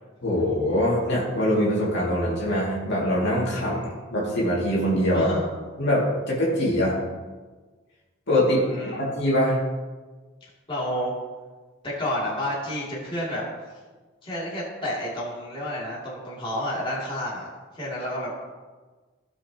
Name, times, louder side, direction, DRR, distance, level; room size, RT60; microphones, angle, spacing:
voice 1, 0.2-3.8 4.1-5.3 5.8-7.0 8.3-8.6 9.0-9.6, equal, 60° left, -5 dB, 2.4 m, -23 dB
voice 2, 8.7-9.0 10.4-11.1 11.8-13.4 14.2-17.5 17.7-18.3, equal, 25° left, -7 dB, 2.6 m, -30 dB
16.5 x 5.6 x 2.9 m, 1.3 s
head